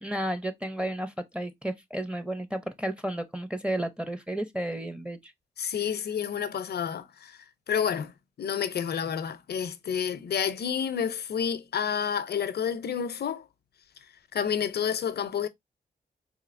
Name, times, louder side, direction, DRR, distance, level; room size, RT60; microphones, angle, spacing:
voice 1, 0.0-5.3, right 1 dB, 5° right, 0.6 m, -32 dB
voice 2, 5.6-7.3 7.7-8.1 8.4-13.4 14.3-15.5, left 8 dB, 70° left, 0.5 m, -29 dB
4.1 x 2.7 x 2.5 m
cardioid pair, 70°, 17 cm